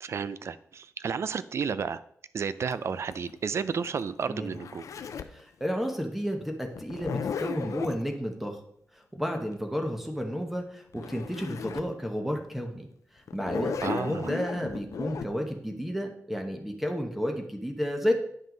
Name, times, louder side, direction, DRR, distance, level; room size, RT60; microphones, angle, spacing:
voice 1, 0.0-2.0 2.3-4.9 13.8-14.3, right 6 dB, 60° right, 15 dB, 0.4 m, -32 dB
Zipper (clothing), 2.7-5.4 6.7-8.0 10.6-10.7 10.9-11.9 12.4-12.5 13.3-15.3, left 6 dB, 90° left, 0.5 m, -36 dB
voice 2, 5.3-8.6 8.9-12.9 13.1-18.1, equal, 5° right, 3 dB, 1.0 m, -32 dB
9.2 x 5.4 x 3.9 m, 0.67 s
wide cardioid pair, 165°, 5 cm